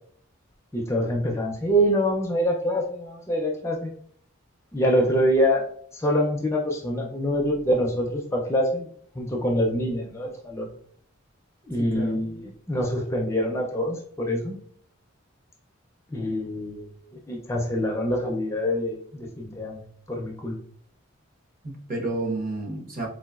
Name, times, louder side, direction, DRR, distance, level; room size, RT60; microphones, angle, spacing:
voice 1, 0.7-3.9 4.7-5.7 5.9-8.9 9.1-10.7 11.6-14.6 16.1-17.0 17.3-20.6, equal, 15° left, 0 dB, 0.4 m, -25 dB
voice 2, 11.8-12.2 21.6-23.1, right 2 dB, 45° right, 0 dB, 0.8 m, -30 dB
3.8 x 2.5 x 2.3 m, 0.62 s
head